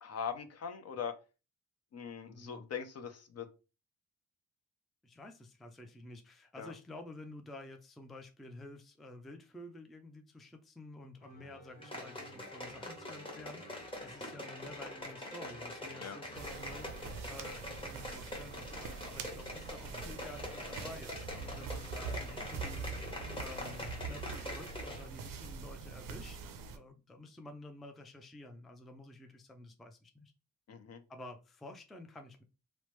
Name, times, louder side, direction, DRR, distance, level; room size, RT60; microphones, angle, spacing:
voice 1, 0.0-1.1 1.9-3.5 6.6-6.7 16.0-16.2 30.7-31.0, left 7 dB, 50° left, 8 dB, 0.5 m, -41 dB
voice 2, 2.2-2.6 5.0-26.4 26.7-30.3 31.1-32.4, left 1 dB, ahead, 4 dB, 0.3 m, -51 dB
sound 1, 11.2-18.0, equal, 75° left, 1.1 m, -57 dB
sound 2, 11.8-25.1 25.4-25.5, left 1 dB, 15° left, 0.9 m, -44 dB
sound 3, 16.3-26.8, right 5 dB, 85° right, 0.5 m, -44 dB
3.0 x 2.0 x 3.1 m, 0.31 s
cardioid pair, 90°, 33 cm